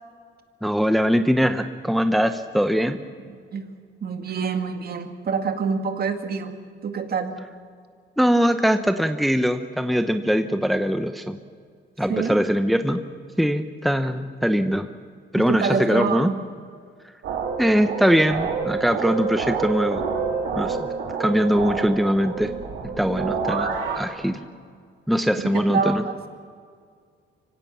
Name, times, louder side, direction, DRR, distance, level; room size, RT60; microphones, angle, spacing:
voice 1, 0.6-3.0 8.2-11.4 12.0-13.0 13.4-14.9 15.3-16.3 17.6-20.0 20.6-20.9 21.2-22.5 23.0-24.4 25.1-26.0, equal, ahead, 8 dB, 0.9 m, -21 dB
voice 2, 4.0-6.6 6.8-7.4 12.1-12.4 15.4-16.4 25.5-26.2, right 5 dB, 50° right, 6 dB, 2.2 m, -26 dB
sound 1, 17.2-24.0, right 5 dB, 80° right, 3.2 m, -28 dB
24.5 x 17.0 x 7.2 m, 2.1 s
cardioid pair, 90°, 20 cm